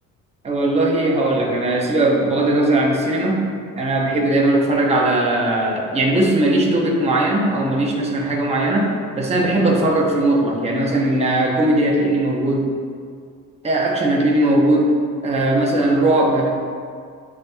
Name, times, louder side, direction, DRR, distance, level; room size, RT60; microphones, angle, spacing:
voice 1, 0.4-3.4 3.7-8.9 9.2-12.7 13.6-14.9 15.2-16.5, right 1 dB, 20° right, -2 dB, 0.7 m, -18 dB
7.8 x 2.7 x 2.3 m, 2.1 s
cardioid pair, 125°, 31 cm